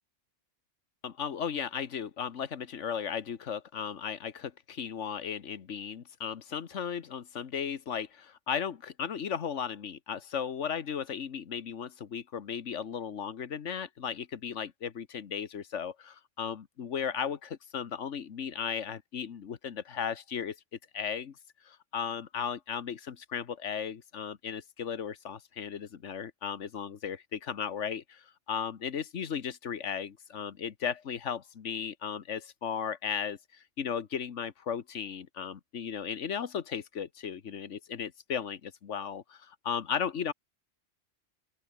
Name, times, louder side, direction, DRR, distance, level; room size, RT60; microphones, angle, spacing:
voice 1, 1.0-20.6 20.9-21.4 21.6-40.3, left 7 dB, 70° left, 1.5 m, -36 dB
open air
omnidirectional pair, 1.3 m